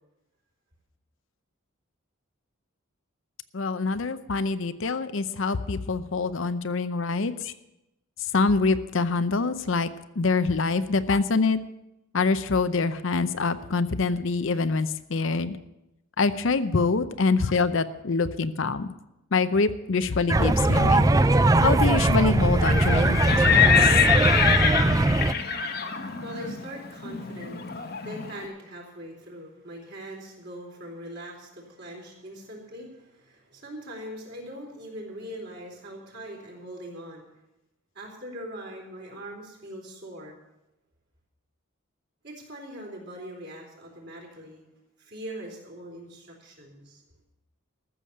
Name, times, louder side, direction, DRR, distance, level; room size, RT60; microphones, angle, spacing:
voice 1, 3.5-7.5 8.3-9.9 10.2-11.6 12.1-15.6 16.2-18.9 19.3-21.0 21.6-24.0, left 4 dB, 65° left, 12 dB, 0.6 m, -25 dB
sound 1, 20.3-25.3, right 2 dB, 15° right, 0.4 m, -20 dB
Livestock farm animals working animals, 22.5-28.3, left 7 dB, 45° left, 1.1 m, -25 dB
voice 2, 25.7-37.3 37.9-40.3 42.2-44.6 45.0-47.0, equal, 50° right, -1 dB, 3.9 m, -41 dB
14.0 x 7.0 x 8.4 m, 0.91 s
head